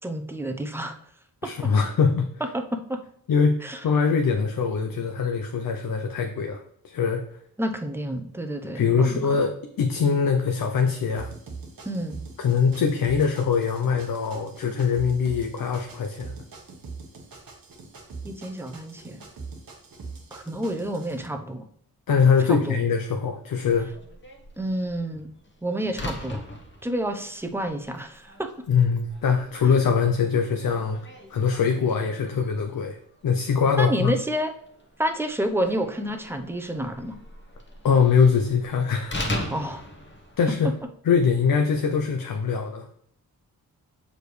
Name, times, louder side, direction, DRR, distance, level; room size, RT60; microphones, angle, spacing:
voice 1, 0.0-1.0 2.5-3.0 3.6-3.8 7.6-9.4 10.0-10.2 11.9-12.2 18.2-19.2 20.3-21.7 22.4-22.8 24.6-25.3 25.6-26.4 26.8-28.5 33.8-34.5 35.0-37.2 39.5-39.8, right 1 dB, 5° right, 6 dB, 0.7 m, -29 dB
voice 2, 1.4-2.3 3.3-7.3 8.7-11.3 12.4-16.3 22.1-23.9 28.7-31.0 31.3-34.1 37.8-39.3 40.4-40.7 41.0-42.9, left 6 dB, 65° left, 4 dB, 0.7 m, -23 dB
sound 1, 11.2-21.3, right 4 dB, 65° right, 1.2 m, -42 dB
Slam, 23.7-40.8, left 1 dB, 30° left, 1.2 m, -40 dB
6.5 x 5.0 x 3.2 m, 0.68 s
cardioid pair, 75°, 36 cm